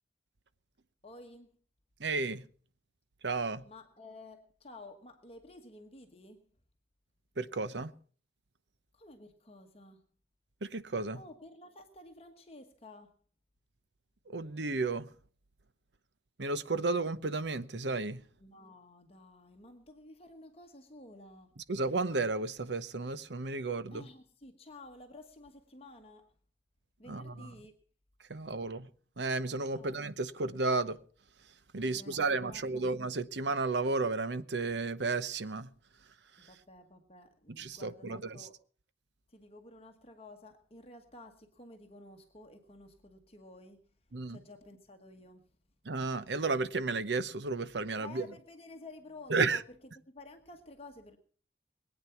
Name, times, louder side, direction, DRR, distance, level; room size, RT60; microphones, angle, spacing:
voice 1, 1.0-1.6 3.6-6.4 8.9-10.0 11.1-13.2 18.4-21.6 23.9-26.3 27.0-27.7 29.7-30.0 31.7-32.9 36.4-38.5 39.3-43.8 44.3-45.5 48.0-49.6 50.1-51.2, left 2 dB, 35° left, 1.3 m, -52 dB
voice 2, 2.0-2.4 3.2-3.6 7.4-7.9 10.6-11.2 14.3-15.1 16.4-18.2 21.6-24.0 27.1-27.5 28.3-28.9 29.2-31.0 31.7-35.7 37.6-38.5 44.1-44.4 45.8-48.2 49.3-49.6, right 3 dB, 85° right, 0.9 m, -33 dB
22.0 x 9.0 x 5.8 m
head